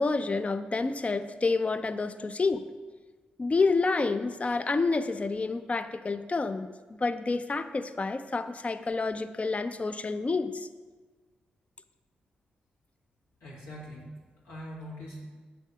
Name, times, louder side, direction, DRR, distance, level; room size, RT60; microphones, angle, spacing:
voice 1, 0.0-2.7 3.4-6.7 7.0-10.7, left 3 dB, 35° left, 10 dB, 0.4 m, -28 dB
voice 2, 13.4-15.2, equal, 85° left, -6 dB, 1.7 m, -43 dB
6.5 x 3.5 x 5.5 m, 1.3 s
supercardioid pair, 45°, 4 cm